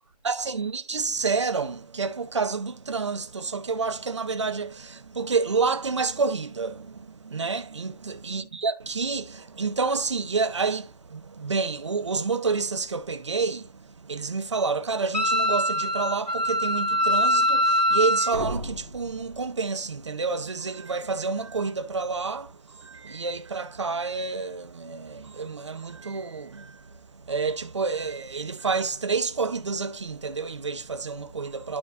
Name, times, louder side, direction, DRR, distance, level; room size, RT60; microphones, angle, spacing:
voice 1, 0.2-31.8, right 4 dB, 45° right, 0.9 m, -29 dB
Wind instrument woodwind instrument, 15.1-18.4, equal, 80° left, 1.1 m, -23 dB
sound 1, 18.3-20.2, right 1 dB, 60° right, 2.5 m, -36 dB
12.5 x 4.3 x 2.5 m
figure-of-eight pair, 150°, 21 cm